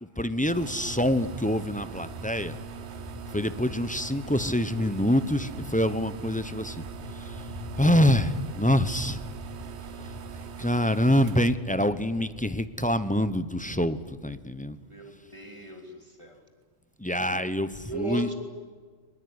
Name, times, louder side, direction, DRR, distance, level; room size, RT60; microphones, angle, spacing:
voice 1, 0.0-2.6 3.3-7.4 7.8-9.2 10.0-10.1 10.6-14.8 17.0-18.3, left 1 dB, 10° left, 12 dB, 0.8 m, -26 dB
sound 1, 0.5-12.9, right 10 dB, 70° right, 1.2 m, -43 dB
sound 2, 0.6-10.4, left 1 dB, 40° left, 4.1 m, -42 dB
sound 3, 6.8-14.2, equal, 65° left, 3.8 m, -51 dB
voice 2, 14.8-16.5 17.8-18.3, right 3 dB, 25° right, 4 dB, 3.0 m, -37 dB
22.5 x 21.0 x 9.7 m, 1.5 s
omnidirectional pair, 1.2 m